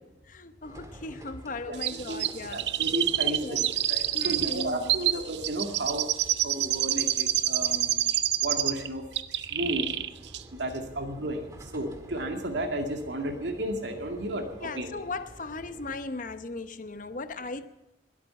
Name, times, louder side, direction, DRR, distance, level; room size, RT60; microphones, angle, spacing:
voice 1, 0.3-2.7 3.2-3.7 4.1-4.9 14.6-17.6, left 3 dB, 50° left, 0.8 m, -37 dB
sound 1, 0.6-16.0, right 1 dB, 20° right, 1.7 m, -50 dB
voice 2, 1.7-3.4 3.9-6.1 6.4-8.1 8.4-9.0 9.5-9.9 10.6-15.0, right 1 dB, 90° right, 2.2 m, -33 dB
Chirp tweet, 1.8-8.9 9.2-10.1 10.3-10.4, right 13 dB, 75° right, 0.6 m, -27 dB
21.5 x 8.7 x 7.0 m
head